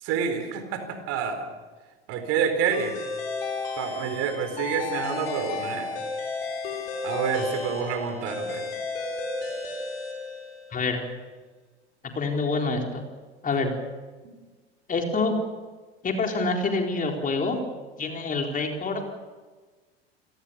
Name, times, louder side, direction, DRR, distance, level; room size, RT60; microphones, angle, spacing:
voice 1, 0.0-1.5 2.1-3.0 3.8-5.9 7.0-8.6, right 7 dB, 50° right, 8 dB, 4.1 m, -28 dB
sound 1, 2.7-10.8, left 4 dB, 70° left, 6.5 m, -33 dB
voice 2, 12.1-13.0 13.4-13.7 14.9-15.3 16.0-17.6 18.0-19.0, left 3 dB, 25° left, 2 dB, 4.3 m, -26 dB
29.5 x 19.0 x 7.1 m, 1.3 s
figure-of-eight pair, 75°, 31 cm